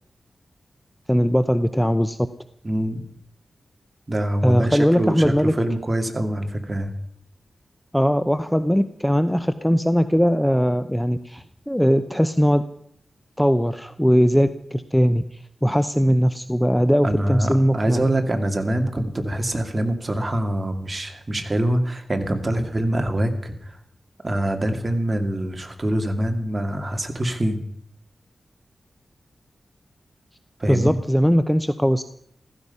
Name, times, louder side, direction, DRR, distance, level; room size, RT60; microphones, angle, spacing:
voice 1, 1.1-2.2 4.4-5.5 7.9-12.6 13.4-15.2 15.6-18.0 30.7-32.0, equal, 5° left, 11 dB, 0.7 m, -20 dB
voice 2, 2.6-3.0 4.1-6.9 17.0-23.8 24.2-27.6 30.6-31.0, right 1 dB, 30° right, 5 dB, 2.4 m, -24 dB
15.5 x 15.0 x 5.6 m, 0.68 s
wide cardioid pair, 80°, 0 cm